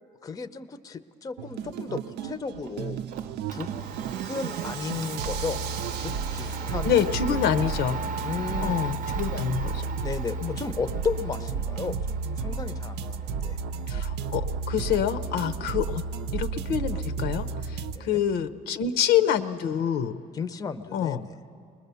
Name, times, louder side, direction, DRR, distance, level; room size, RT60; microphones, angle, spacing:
voice 1, 0.2-3.0 3.5-3.7 4.2-5.6 6.0-7.5 8.2-8.8 10.0-13.6 17.9-18.2 20.3-21.4, left 5 dB, 20° left, 12 dB, 0.6 m, -34 dB
sound 1, 1.4-18.0, right 5 dB, 90° right, 0.6 m, -32 dB
Domestic sounds home sounds, 2.7-18.5, right 5 dB, 50° right, 0.7 m, -39 dB
voice 2, 6.8-8.0 8.6-9.9 10.4-10.6 13.9-16.0 16.3-20.2 20.9-21.2, left 9 dB, 85° left, 10 dB, 0.7 m, -26 dB
21.0 x 21.0 x 6.9 m, 2.5 s
cardioid pair, 110°, 17 cm